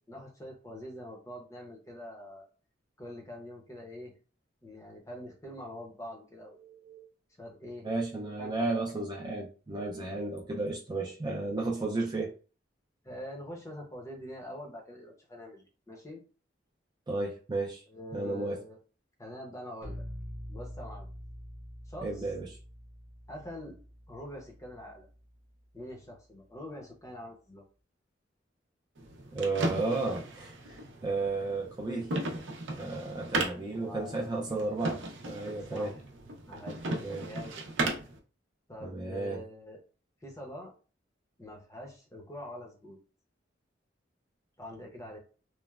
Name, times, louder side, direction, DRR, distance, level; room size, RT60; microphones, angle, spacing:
voice 1, 0.1-2.5 3.0-4.1 4.6-6.6 7.4-7.9 8.4-8.8 11.8-12.0 13.0-16.2 17.9-18.8 19.2-20.0 20.5-21.1 21.9-22.3 23.3-23.8 24.1-25.1 25.7-27.6 33.7-34.3 35.7-36.0 36.5-37.6 38.7-39.8 40.2-40.7 41.4-43.0 44.6-45.2, left 1 dB, 15° left, 0 dB, 0.6 m, -44 dB
voice 2, 6.6-7.1 7.8-12.3 17.1-17.8 18.1-18.6 22.0-22.5 29.3-32.1 32.8-35.9 37.0-37.2 38.8-39.4, right 3 dB, 25° right, -1 dB, 0.4 m, -33 dB
sound 1, 19.8-25.6, equal, 60° left, 0.7 m, -46 dB
sound 2, 29.0-38.2, right 2 dB, 80° right, 0.6 m, -36 dB
3.1 x 2.0 x 2.3 m, 0.37 s
head